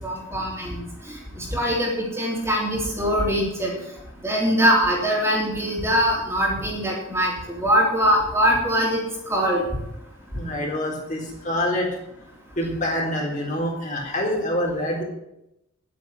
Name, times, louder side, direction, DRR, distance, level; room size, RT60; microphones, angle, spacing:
voice 1, 0.0-3.7 4.2-9.7, equal, 15° right, -3 dB, 3.4 m, -22 dB
voice 2, 10.3-11.9 12.6-15.0, left 1 dB, 40° left, -2 dB, 3.9 m, -26 dB
11.0 x 9.5 x 7.4 m, 0.85 s
head